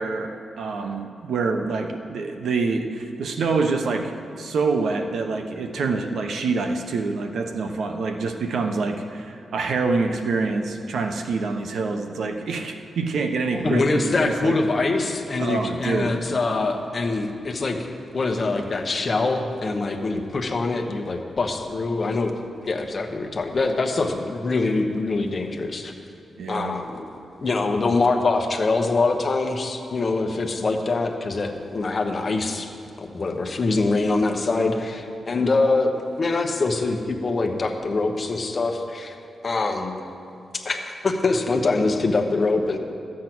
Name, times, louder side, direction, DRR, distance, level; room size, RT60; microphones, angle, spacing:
voice 1, 0.0-4.1 4.4-14.6 15.4-16.2 26.4-26.8, right 4 dB, 75° right, 5 dB, 0.9 m, -26 dB
voice 2, 13.5-17.8 18.1-22.3 22.6-25.9 26.5-27.1 27.4-32.7 33.0-35.9 36.2-39.1 39.4-40.0 40.6-42.8, left 3 dB, 35° left, 3 dB, 1.0 m, -24 dB
13.0 x 7.5 x 6.1 m, 2.7 s
wide cardioid pair, 150°, 0 cm